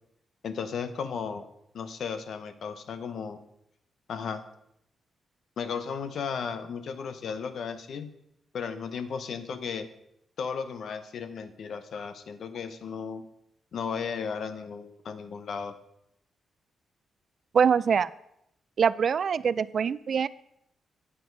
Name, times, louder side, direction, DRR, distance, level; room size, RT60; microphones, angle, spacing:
voice 1, 0.4-1.5 1.7-3.4 4.1-4.4 5.6-8.1 8.5-9.9 10.4-13.2 13.7-15.7, left 6 dB, 65° left, 10 dB, 0.8 m, -35 dB
voice 2, 17.5-18.1 18.8-20.3, right 7 dB, 55° right, 18 dB, 0.3 m, -24 dB
8.6 x 7.3 x 4.6 m, 0.78 s
cardioid pair, 110°, 0 cm